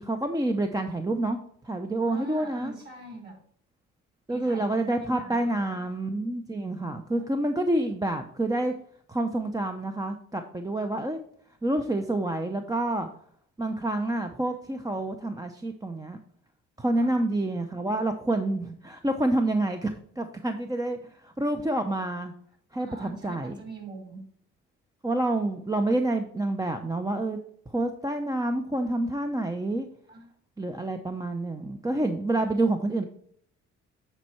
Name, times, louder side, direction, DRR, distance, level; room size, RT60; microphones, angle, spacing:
voice 1, 0.0-1.4 1.6-2.7 4.3-8.7 9.1-11.2 11.6-13.1 13.6-16.2 16.8-22.3 22.7-23.5 25.0-27.4 27.7-29.9 30.6-33.1, right 1 dB, 10° right, 6 dB, 0.6 m, -28 dB
voice 2, 2.1-3.4 4.3-5.7 6.8-7.4 17.0-17.2 22.8-24.3 30.1-30.3, right 2 dB, 35° right, 1 dB, 3.7 m, -43 dB
9.1 x 4.4 x 4.4 m, 0.64 s
cardioid pair, 90°, 30 cm